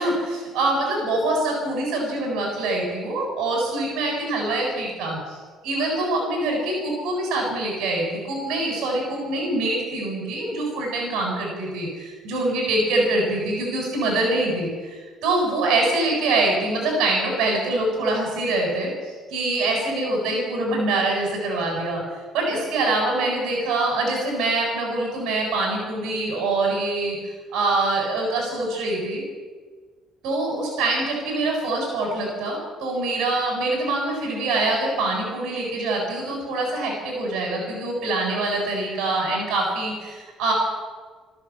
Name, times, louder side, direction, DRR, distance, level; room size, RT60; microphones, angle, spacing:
voice 1, 0.0-5.4 5.6-22.0 22.3-27.2 27.5-29.2 30.2-40.5, right 2 dB, 70° right, 0 dB, 7.8 m, -24 dB
22.5 x 14.0 x 8.8 m, 1.4 s
cardioid pair, 140°, 0 cm